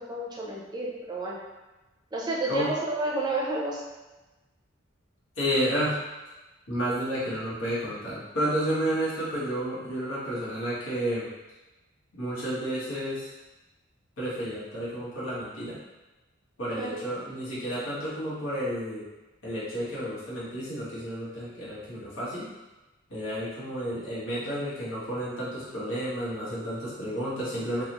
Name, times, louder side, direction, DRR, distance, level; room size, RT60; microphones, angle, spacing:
voice 1, 0.0-1.4 2.1-3.8 16.6-17.0, right 2 dB, 20° right, -3 dB, 0.5 m, -30 dB
voice 2, 5.4-6.0 6.7-11.3 12.1-13.3 14.2-15.8 16.6-19.1 19.4-22.5 23.1-27.8, equal, 90° left, -8 dB, 1.3 m, -31 dB
3.5 x 2.3 x 2.9 m, 1.1 s
head